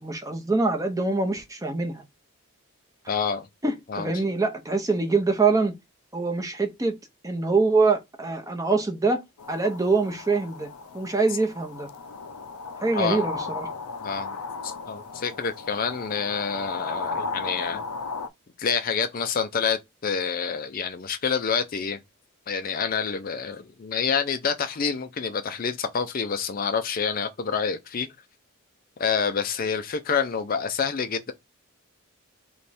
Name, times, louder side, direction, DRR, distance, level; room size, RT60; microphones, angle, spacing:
voice 1, 0.0-2.0 3.6-5.7 6.1-7.0 7.2-9.2 9.5-11.9 12.8-13.7, right 3 dB, 15° right, 0.7 m, -24 dB
voice 2, 3.1-3.5 3.9-4.1 13.0-13.3 14.0-14.3 14.6-17.8 18.6-22.0 22.5-28.1 29.0-31.3, left 6 dB, 40° left, 0.4 m, -27 dB
sound 1, 9.4-18.3, left 4 dB, 85° left, 0.6 m, -35 dB
3.4 x 3.1 x 4.2 m
head